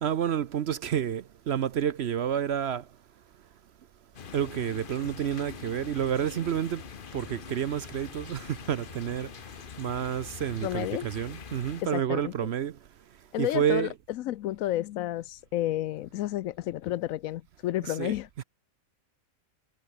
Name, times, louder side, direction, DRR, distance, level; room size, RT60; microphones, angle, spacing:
voice 1, 0.0-2.9 4.3-6.8 7.1-9.3 9.8-12.8 13.4-13.9 17.8-18.4, right 9 dB, 60° right, 0.8 m, -29 dB
sound 1, 4.1-11.8, left 7 dB, 45° left, 1.0 m, -44 dB
voice 2, 10.6-11.1 11.8-12.3 13.3-18.3, left 14 dB, 75° left, 1.0 m, -31 dB
omnidirectional pair, 1.5 m